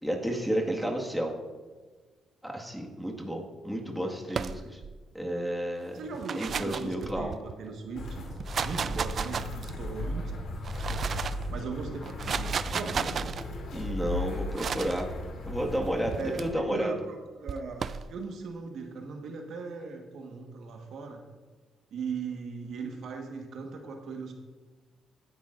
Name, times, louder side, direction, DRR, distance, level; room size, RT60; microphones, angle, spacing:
voice 1, 0.0-1.3 2.4-4.8 5.1-6.0 6.4-7.3 13.7-15.1 15.4-16.9, equal, ahead, -1 dB, 1.7 m, -31 dB
cornflakes package rustle shake fall, 4.3-5.0 6.0-7.5 8.3-9.9 10.5-11.5 12.0-13.4 14.6-15.0 16.1-16.4 17.5-18.1, right 6 dB, 50° right, 0.4 m, -34 dB
voice 2, 5.9-8.3 8.6-10.2 10.8-11.2 11.5-13.4 16.2-21.2 21.9-24.3, right 4 dB, 70° right, 2 dB, 1.4 m, -38 dB
sound 1, 7.9-16.6, left 1 dB, 65° left, 2.6 m, -36 dB
16.5 x 10.5 x 2.5 m, 1.4 s
cardioid pair, 90°, 0 cm